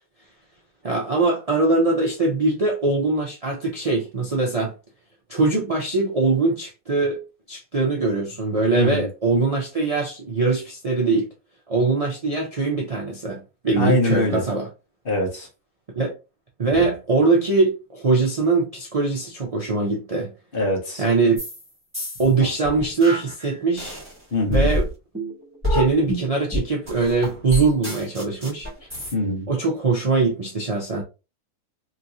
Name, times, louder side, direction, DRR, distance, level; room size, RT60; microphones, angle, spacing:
voice 1, 0.8-4.7 5.3-7.2 7.5-11.3 11.7-14.7 15.9-16.1 16.6-20.3 21.0-21.4 22.2-24.0 24.5-24.9 25.7-28.7 29.5-31.0, right 3 dB, 70° right, 0.3 m, -22 dB
voice 2, 8.7-9.1 13.8-14.4 15.0-15.5 20.5-21.0 24.3-24.7 29.1-29.5, left 2 dB, 40° left, 1.2 m, -22 dB
sound 1, 21.4-21.6 21.9-24.1 24.5-29.1, equal, 10° right, 1.5 m, -27 dB
3.1 x 2.9 x 2.6 m
omnidirectional pair, 1.6 m